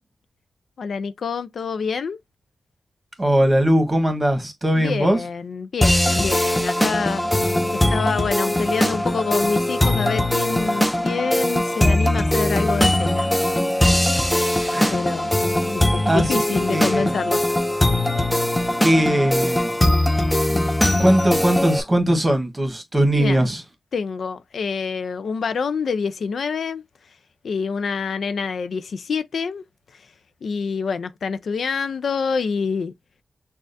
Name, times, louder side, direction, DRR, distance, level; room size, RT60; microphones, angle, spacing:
voice 1, 0.8-2.2 4.8-7.2 7.7-13.3 13.8-17.4 20.5-20.8 23.1-23.4 23.9-26.8 27.4-29.6 29.9-30.1 30.4-32.9, left 5 dB, 80° left, 0.4 m, -27 dB
voice 2, 3.2-5.2 14.7-15.0 16.0-16.3 16.7-17.1 18.8-19.7 21.0-23.6, right 1 dB, 20° right, 1.3 m, -20 dB
sound 1, 5.8-21.8, left 1 dB, 10° left, 0.6 m, -20 dB
6.2 x 2.4 x 2.5 m
wide cardioid pair, 100°, 0 cm